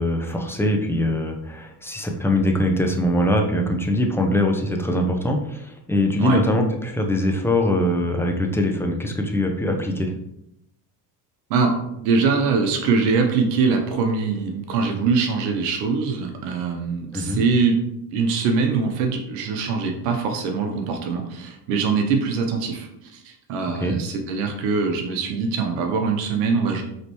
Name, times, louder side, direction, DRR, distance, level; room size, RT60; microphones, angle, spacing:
voice 1, 0.0-10.1 17.1-17.4 23.8-24.0, left 1 dB, 5° left, 2 dB, 0.7 m, -22 dB
voice 2, 11.5-26.8, right 4 dB, 75° right, 3 dB, 0.9 m, -23 dB
5.0 x 3.2 x 3.0 m, 0.81 s
hypercardioid pair, 70°, 49 cm